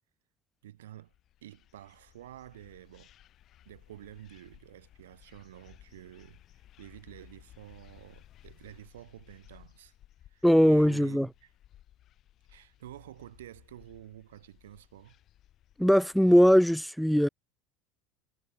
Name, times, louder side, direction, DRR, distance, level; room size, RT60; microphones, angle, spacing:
voice 1, 0.6-1.1 1.4-3.1 3.6-6.4 6.8-9.9 10.3-11.5 12.5-15.2, right 13 dB, 75° right, 1.4 m, -49 dB
sound 1, 0.8-16.5, left 12 dB, 45° left, 1.8 m, -58 dB
voice 2, 10.4-11.3 15.8-17.3, equal, ahead, 0.3 m, -20 dB
figure-of-eight pair, 75°, 0 cm